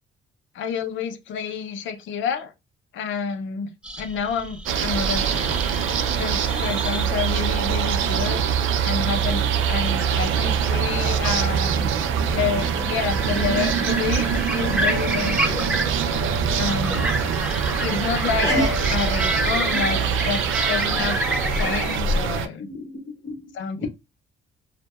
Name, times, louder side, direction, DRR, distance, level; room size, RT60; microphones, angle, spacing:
voice 1, 0.5-2.5 2.9-3.7 4.0-5.6 6.1-11.9 12.2-15.7 16.6-17.1 17.8-18.5 18.9-21.2 21.5-22.7 23.5-23.9, left 6 dB, 75° left, 0.5 m, -29 dB
sound 1, 3.8-22.0, right 1 dB, 5° right, 0.4 m, -30 dB
sound 2, 4.7-22.5, right 7 dB, 85° right, 0.4 m, -24 dB
sound 3, 14.4-19.2, left 2 dB, 30° right, 1.0 m, -36 dB
voice 2, 18.4-18.8 19.7-19.9 22.6-23.9, left 1 dB, 30° left, 0.7 m, -29 dB
2.6 x 2.1 x 2.3 m
cardioid pair, 90°, 20 cm